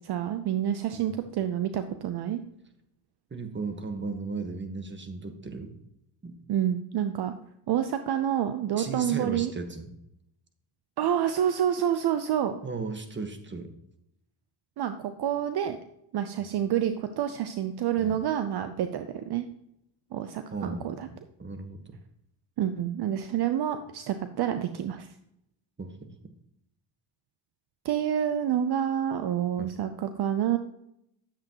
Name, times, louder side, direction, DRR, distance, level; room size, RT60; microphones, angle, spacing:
voice 1, 0.0-2.4 6.5-7.3 7.7-9.5 11.0-12.6 14.8-15.8 16.1-19.5 20.1-21.1 22.6-25.1 27.8-30.6, right 10 dB, 50° right, 9 dB, 0.7 m, -28 dB
voice 2, 3.3-5.7 6.2-6.4 8.8-9.9 12.6-13.7 18.0-18.2 20.5-20.9 21.4-22.0 25.8-26.3 29.6-29.7, right 3 dB, 20° right, 8 dB, 1.4 m, -36 dB
10.0 x 7.7 x 3.0 m, 0.80 s
supercardioid pair, 75°, 49 cm